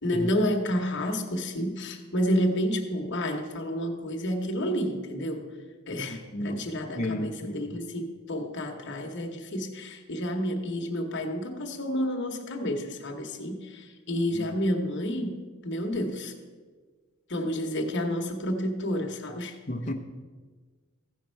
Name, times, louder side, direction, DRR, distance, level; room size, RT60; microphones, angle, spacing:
voice 1, 0.0-5.5 5.9-16.3 17.3-19.5, equal, 55° left, 2 dB, 1.2 m, -30 dB
voice 2, 6.1-6.6 6.9-7.8 14.3-14.5 19.7-19.9, left 1 dB, 35° left, 2 dB, 0.8 m, -33 dB
15.5 x 5.3 x 4.5 m, 1.4 s
head